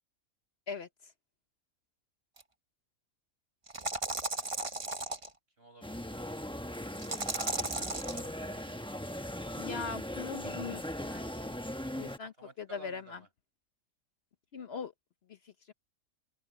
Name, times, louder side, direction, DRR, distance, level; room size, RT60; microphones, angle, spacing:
sound 1, 2.4-2.5 3.7-5.3 7.0-8.3, right 2 dB, 25° right, 1.1 m, -35 dB
voice 1, 4.3-5.2 5.6-6.4 7.6-8.9 12.2-13.3, right 2 dB, 45° right, 8.3 m, -56 dB
sound 2, 5.8-12.2, left 1 dB, 5° left, 0.7 m, -39 dB
voice 2, 9.5-11.5 12.0-13.2 14.5-14.9 15.3-15.4 15.7-15.8, left 5 dB, 55° left, 0.9 m, -41 dB
open air
omnidirectional pair, 1.5 m